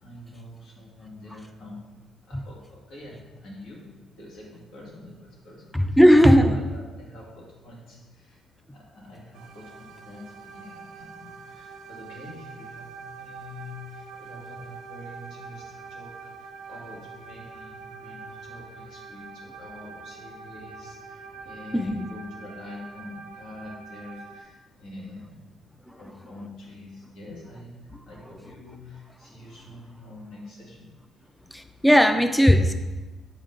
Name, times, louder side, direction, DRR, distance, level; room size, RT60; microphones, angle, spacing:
voice 1, 0.0-1.9 2.3-6.0 6.4-8.4 8.7-25.5 26.0-30.9 31.2-31.3, left 2 dB, 75° left, -3 dB, 2.0 m, -45 dB
voice 2, 5.7-6.6 21.7-22.1 31.5-32.7, equal, 5° left, 8 dB, 0.4 m, -17 dB
sound 1, 9.3-24.4, right 4 dB, 70° right, 0.7 m, -44 dB
7.2 x 5.1 x 3.8 m, 1.2 s
cardioid pair, 135°, 0 cm